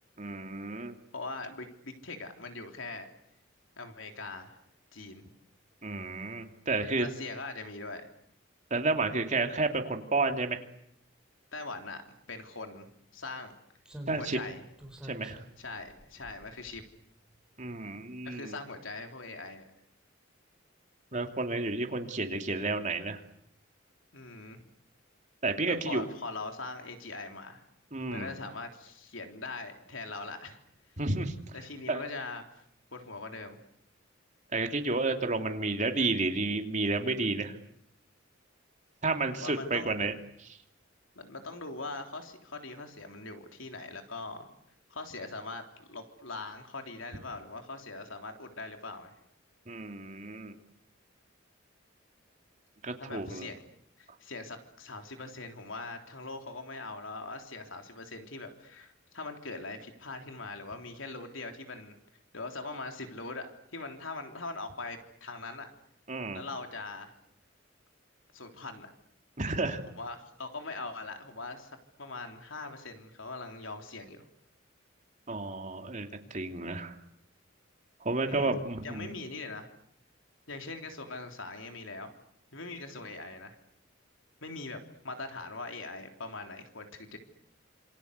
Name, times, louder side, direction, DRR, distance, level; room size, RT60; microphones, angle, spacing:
voice 1, 0.2-0.9 5.8-7.1 8.7-10.6 14.1-14.4 15.0-15.4 17.6-18.5 21.1-23.2 25.4-26.0 27.9-28.3 31.0-31.3 31.9-32.0 34.5-37.6 39.0-40.1 40.4-40.6 49.7-50.5 52.8-53.5 66.1-66.4 69.4-69.8 75.3-76.9 78.0-79.1, right 3 dB, 40° right, 5 dB, 2.9 m, -31 dB
voice 2, 1.1-3.1 3.8-4.6 4.9-5.2 7.0-8.1 11.5-12.0 12.3-13.6 14.1-14.6 15.6-16.8 18.2-19.6 24.1-24.7 25.6-27.6 28.1-30.6 31.5-32.6 32.9-33.6 39.3-39.9 41.2-44.5 44.9-49.1 53.0-53.6 54.0-62.0 62.3-63.5 63.7-65.7 66.3-67.1 68.3-68.9 69.9-71.7 72.0-74.2 78.2-78.6 78.8-79.7 80.5-82.1 82.5-83.6 84.4-84.8 85.0-87.2, left 3 dB, 80° left, 5 dB, 3.6 m, -41 dB
Slam, 13.8-17.4 17.7-17.8, right 1 dB, 5° right, 5.2 m, -49 dB
27.5 x 26.5 x 8.2 m, 0.72 s
head